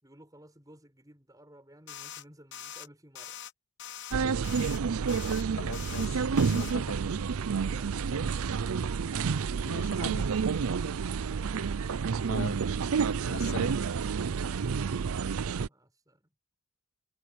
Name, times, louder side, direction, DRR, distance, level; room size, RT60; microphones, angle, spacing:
voice 1, 0.0-3.4 7.7-7.9 9.6-10.4 13.2-13.8 15.6-16.3, right 1 dB, 15° right, 7.0 m, -55 dB
sound 1, 1.9-2.2 2.5-2.9 3.1-3.5 3.8-4.1 4.4-4.8 5.1-5.4 5.7-6.1 6.4-6.7, left 10 dB, 50° left, 1.1 m, -43 dB
sound 2, 4.1-15.7, right 5 dB, 75° right, 0.5 m, -29 dB
voice 2, 5.6-7.0 9.7-10.2 12.3-12.6 13.2-13.7, left 3 dB, 75° left, 2.0 m, -40 dB
head